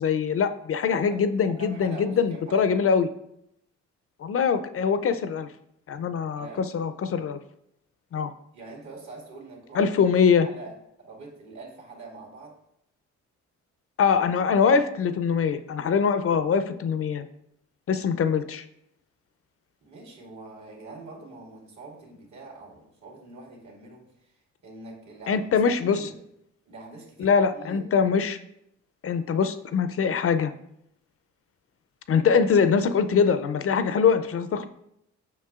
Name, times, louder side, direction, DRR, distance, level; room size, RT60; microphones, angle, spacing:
voice 1, 0.0-3.1 4.2-5.5 5.9-7.4 8.1-8.3 9.7-10.5 14.0-17.3 17.9-18.6 25.3-26.1 27.2-28.4 29.0-30.5 32.1-34.7, left 6 dB, 45° left, 11 dB, 0.5 m, -23 dB
voice 2, 0.9-2.9 6.4-6.7 8.5-10.1 10.4-12.6 17.9-18.0 18.3-18.4 19.8-24.3 24.6-25.6 25.9-26.2 26.7-27.9, right 3 dB, 65° right, -2 dB, 2.2 m, -44 dB
7.5 x 5.4 x 2.4 m, 0.77 s
supercardioid pair, 65°, 31 cm